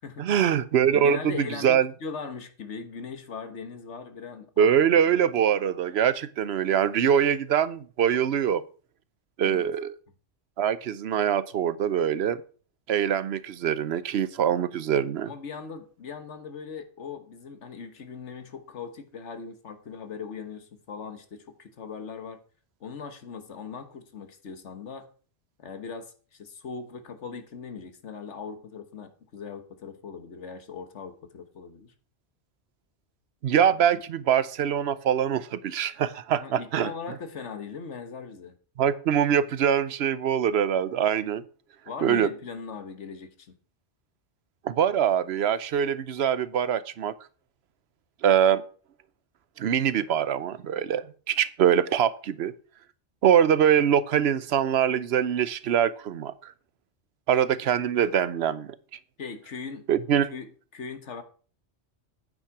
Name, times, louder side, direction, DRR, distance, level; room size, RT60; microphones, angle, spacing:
voice 1, 0.2-1.3 1.6-1.9 4.6-8.6 9.4-9.9 10.6-12.4 12.9-15.3 33.4-36.9 38.8-41.4 42.0-42.3 44.6-47.1 48.2-48.6 49.6-52.5 53.2-56.5 57.3-58.8 59.9-60.3, right 9 dB, 70° right, 0.9 m, -23 dB
voice 2, 0.9-4.7 5.1-5.3 9.4-9.6 15.2-22.4 22.8-25.1 25.6-31.9 36.4-38.5 41.9-43.6 59.2-59.9 60.3-61.2, left 5 dB, 80° left, 1.5 m, -39 dB
9.1 x 8.7 x 4.7 m
omnidirectional pair, 1.2 m